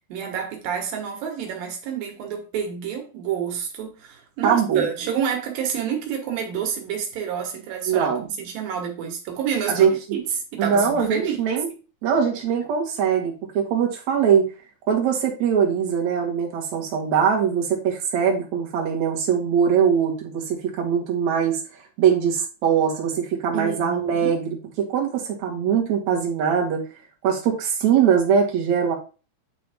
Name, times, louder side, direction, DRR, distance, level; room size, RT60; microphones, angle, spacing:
voice 1, 0.1-10.2 10.5-11.4 23.5-24.4, right 8 dB, 90° right, 3.1 m, -29 dB
voice 2, 4.4-4.9 7.9-8.2 9.7-10.2 10.6-11.7 12.0-14.4 14.9-21.6 22.0-26.8 27.2-29.0, right 7 dB, 60° right, 2.7 m, -22 dB
9.4 x 3.6 x 3.5 m
omnidirectional pair, 3.9 m